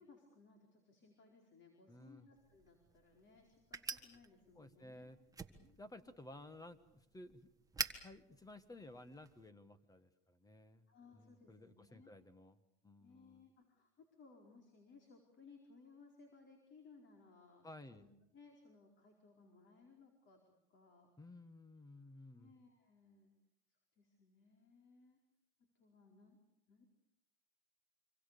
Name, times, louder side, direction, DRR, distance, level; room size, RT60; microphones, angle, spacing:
voice 1, 0.0-5.1 10.9-12.1 13.0-18.1 18.3-21.1 22.3-23.3 24.0-25.2 25.8-26.4 26.7-26.8, left 4 dB, 35° left, 3 dB, 4.9 m, -63 dB
voice 2, 1.9-2.3 4.5-5.2 5.6-7.5 8.0-10.9 11.1-13.5 17.6-18.1 21.2-22.5, left 1 dB, 10° left, 13 dB, 1.5 m, -56 dB
sound 1, 2.4-9.5, right 4 dB, 10° right, 1.6 m, -49 dB
26.0 x 26.0 x 6.9 m, 0.81 s
supercardioid pair, 125°, 34 cm